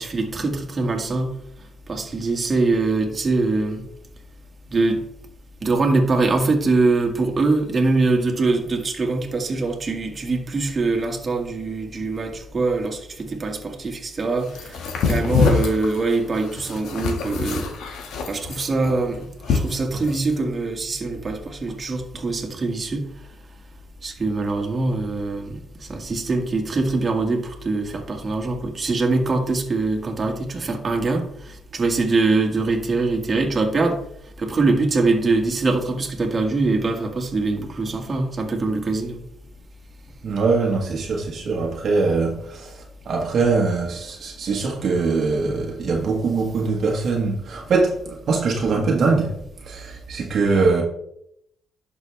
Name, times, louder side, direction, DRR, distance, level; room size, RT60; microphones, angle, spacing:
voice 1, 0.0-1.3 1.9-3.8 4.7-5.0 5.6-14.8 15.0-17.7 18.3-23.1 24.0-34.0 34.4-39.2, right 3 dB, 35° right, 1.9 m, -23 dB
sound 1, 14.5-20.3, left 5 dB, 80° left, 1.7 m, -25 dB
voice 2, 40.2-49.3 49.6-50.8, right 4 dB, 55° right, 1.5 m, -22 dB
11.0 x 6.2 x 3.5 m
cardioid pair, 90°, 0 cm